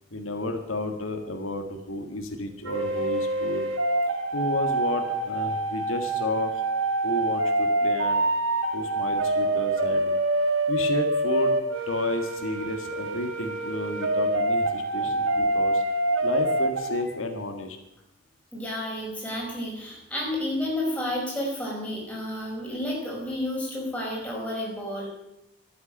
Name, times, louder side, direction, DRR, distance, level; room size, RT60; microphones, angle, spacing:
voice 1, 0.1-3.7 4.3-6.6 7.0-8.3 8.7-10.1 10.7-11.6 11.9-15.8 16.2-17.8, left 2 dB, 90° left, 5 dB, 1.9 m, -32 dB
sound 1, 2.6-17.0, right 2 dB, 85° right, 2.0 m, -26 dB
voice 2, 15.0-15.5 18.5-25.1, left 1 dB, 5° left, -3 dB, 5.1 m, -31 dB
12.0 x 9.6 x 8.9 m, 0.88 s
head